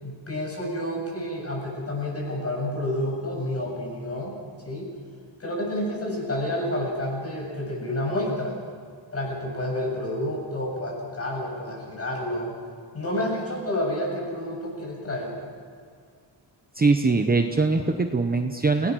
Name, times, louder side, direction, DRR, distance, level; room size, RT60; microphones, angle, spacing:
voice 1, 0.0-4.3 4.6-4.9 5.4-8.5 9.1-12.5 12.9-15.3, left 1 dB, 35° left, -1 dB, 7.5 m, -29 dB
voice 2, 16.7-18.9, right 3 dB, 20° right, 5 dB, 0.9 m, -22 dB
30.0 x 19.0 x 6.3 m, 2.1 s
wide cardioid pair, 175°, 43 cm